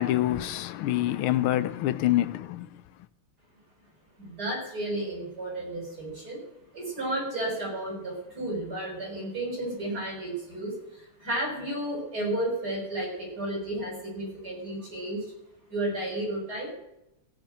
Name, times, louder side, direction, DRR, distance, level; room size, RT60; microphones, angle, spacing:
voice 1, 0.0-2.7, left 14 dB, 80° left, 1.6 m, -26 dB
voice 2, 4.2-6.4 6.7-15.3 15.7-16.7, right 1 dB, 45° right, 7.2 m, -32 dB
17.0 x 7.4 x 8.9 m
omnidirectional pair, 2.4 m